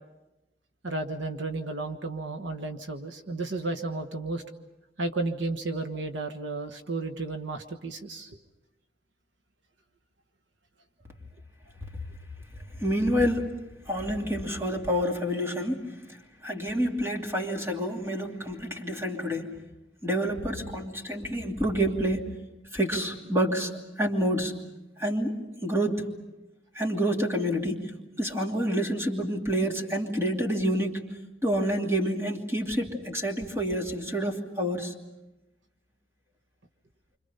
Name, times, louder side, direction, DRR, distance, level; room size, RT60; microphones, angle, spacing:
voice 1, 0.8-4.4 5.0-8.4, right 2 dB, 70° right, 5 dB, 1.4 m, -33 dB
voice 2, 12.8-13.5 13.9-15.9 16.4-19.6 20.0-22.3 22.7-23.7 24.0-24.6 25.0-26.0 26.7-27.9 28.2-31.0 31.4-34.9, equal, 15° right, 1 dB, 2.5 m, -28 dB
29.0 x 25.5 x 5.6 m, 1.0 s
head